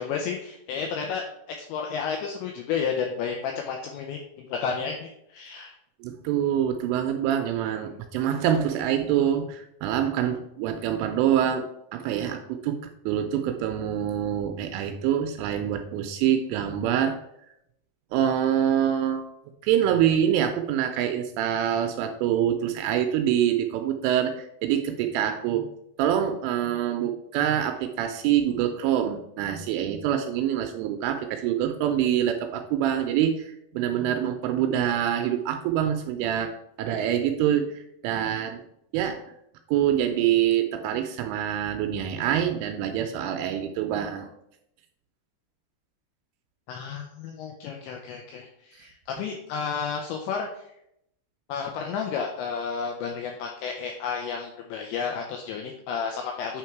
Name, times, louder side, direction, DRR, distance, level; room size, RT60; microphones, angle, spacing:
voice 1, 0.0-5.8 7.8-8.0 46.7-50.7 51.5-56.6, left 6 dB, 90° left, 2 dB, 2.6 m, -32 dB
voice 2, 6.0-12.8 13.1-17.2 18.1-19.2 19.6-25.7 26.0-38.6 38.9-39.2 39.7-44.3, right 10 dB, 85° right, 6 dB, 2.9 m, -25 dB
9.1 x 3.6 x 4.5 m, 0.77 s
omnidirectional pair, 6.0 m